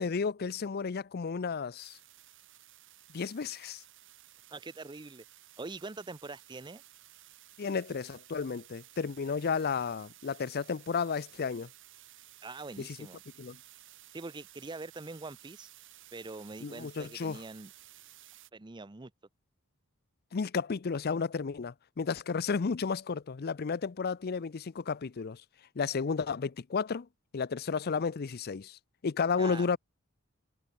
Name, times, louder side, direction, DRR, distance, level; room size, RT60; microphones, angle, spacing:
voice 1, 0.0-2.0 3.1-3.8 7.6-11.7 12.8-13.0 13.4-13.6 16.6-17.4 20.3-25.4 25.8-27.1 27.3-29.8, left 5 dB, 45° left, 0.5 m, -32 dB
sound 1, 1.8-18.5, right 14 dB, 60° right, 3.0 m, -56 dB
voice 2, 4.5-5.2 5.6-6.8 12.4-13.2 14.1-15.7 16.1-17.7 18.5-19.1 29.4-29.7, right 3 dB, 20° right, 0.6 m, -43 dB
head